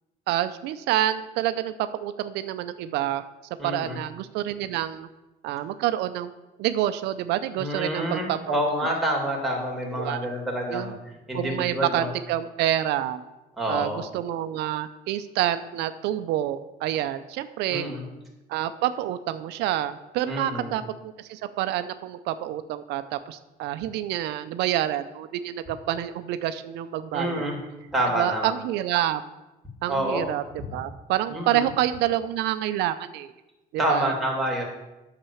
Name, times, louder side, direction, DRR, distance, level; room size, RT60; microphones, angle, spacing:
voice 1, 0.3-3.2 3.6-5.1 5.4-6.3 6.6-8.9 9.8-10.2 10.7-11.0 11.3-13.2 13.7-17.9 18.5-27.5 28.2-29.2 29.8-30.4 30.7-33.3 33.7-34.1, right 12 dB, 85° right, 11 dB, 0.6 m, -28 dB
voice 2, 3.6-4.0 7.6-10.9 11.3-12.1 13.6-14.0 17.7-18.0 20.3-20.7 27.1-27.6 27.9-28.5 29.9-30.2 31.3-31.7 33.8-34.6, equal, ahead, -2 dB, 3.1 m, -27 dB
8.9 x 6.7 x 7.0 m, 1.0 s
cardioid pair, 110°, 17 cm